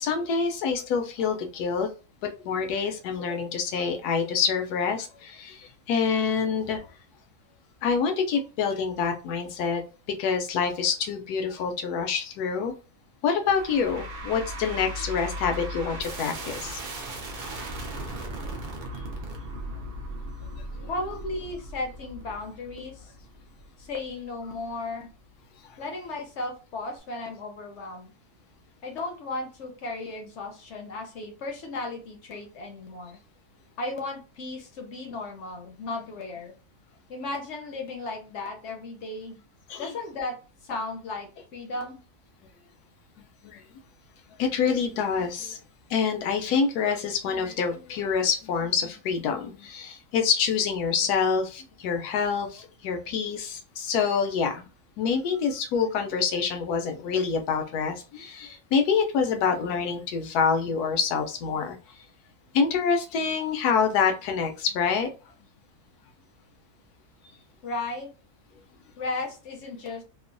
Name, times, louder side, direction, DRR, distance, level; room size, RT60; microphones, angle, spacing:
voice 1, 0.0-1.9 2.4-6.8 7.8-9.8 10.2-12.7 13.2-16.8 39.7-39.9 43.4-43.6 44.4-45.6 45.9-54.7 55.0-61.8 62.5-65.1, left 6 dB, 85° left, 1.1 m, -26 dB
sound 1, 13.5-24.7, right 1 dB, 70° right, 0.5 m, -37 dB
voice 2, 20.9-23.1 23.8-25.1 25.8-28.1 28.8-33.2 33.8-36.5 37.1-39.4 39.8-40.4 40.6-42.0 67.6-68.1 69.0-70.0, left 2 dB, 60° left, 0.8 m, -35 dB
3.0 x 2.0 x 2.5 m
omnidirectional pair, 1.6 m